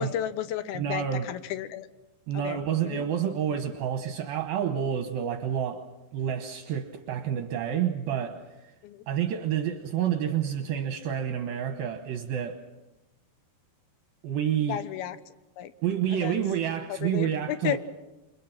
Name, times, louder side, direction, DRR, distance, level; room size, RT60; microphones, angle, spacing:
voice 1, 0.0-1.9 2.3-3.0 8.8-9.0 14.7-15.2 15.6-15.7 16.2-16.4 17.0-17.8, left 11 dB, 75° left, 13 dB, 2.8 m, -33 dB
voice 2, 0.7-1.3 2.3-5.8 6.1-8.4 9.1-12.6 14.2-14.8 15.8-17.8, right 9 dB, 70° right, 6 dB, 2.8 m, -29 dB
29.0 x 24.0 x 6.0 m, 1.0 s
omnidirectional pair, 4.7 m